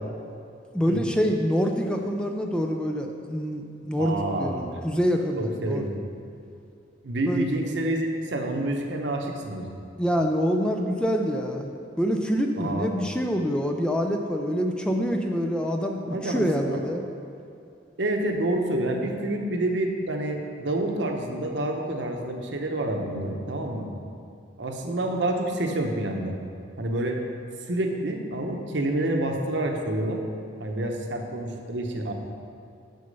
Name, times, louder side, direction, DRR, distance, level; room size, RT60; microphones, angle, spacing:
voice 1, 0.7-6.0 7.3-7.4 10.0-17.0, equal, 5° left, 3 dB, 0.4 m, -26 dB
voice 2, 4.0-4.7 5.4-5.9 7.0-9.7 12.6-12.9 16.1-16.8 18.0-23.9 24.6-26.3 26.8-27.2 27.7-30.2 30.6-32.1, right 1 dB, 65° right, 3 dB, 0.9 m, -28 dB
6.9 x 6.4 x 5.3 m, 2.5 s
head